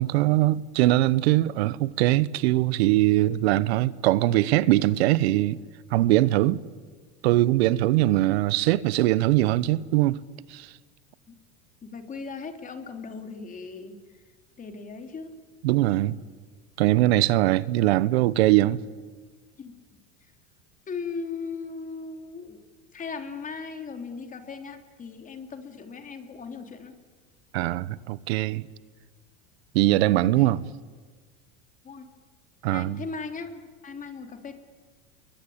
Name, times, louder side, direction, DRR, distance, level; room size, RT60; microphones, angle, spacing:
voice 1, 0.0-5.6 5.9-6.6 7.2-10.2 10.5-10.7 15.6-16.2 16.8-18.8 27.5-28.7 29.7-30.6 32.6-33.0, right 16 dB, 80° right, 1.0 m, -22 dB
voice 2, 11.8-14.0 14.6-15.4 19.6-19.7 20.9-22.6 22.9-26.9 30.3-30.5 31.8-32.1 32.7-34.5, left 5 dB, 25° left, 3.2 m, -38 dB
29.5 x 22.5 x 8.7 m
supercardioid pair, 125°, 31 cm